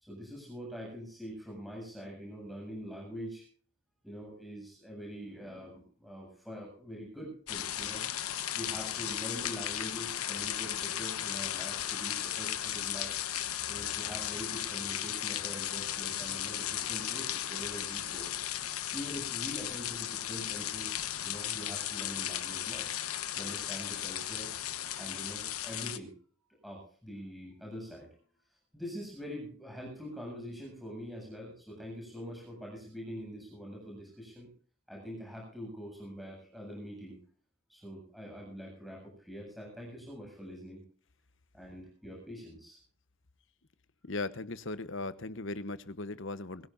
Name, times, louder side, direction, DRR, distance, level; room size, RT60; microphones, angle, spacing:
voice 1, 0.1-3.4 4.0-8.0 8.5-13.1 13.7-18.3 18.9-22.9 23.3-24.5 25.0-26.1 26.6-28.1 28.7-34.5 34.9-37.2 37.7-40.8 41.5-42.8, equal, ahead, 7.8 m, -44 dB
sound 1, 7.5-26.0, left 11 dB, 90° left, 1.2 m, -36 dB
voice 2, 44.0-46.7, left 2 dB, 60° left, 1.0 m, -38 dB
23.0 x 16.5 x 2.6 m
head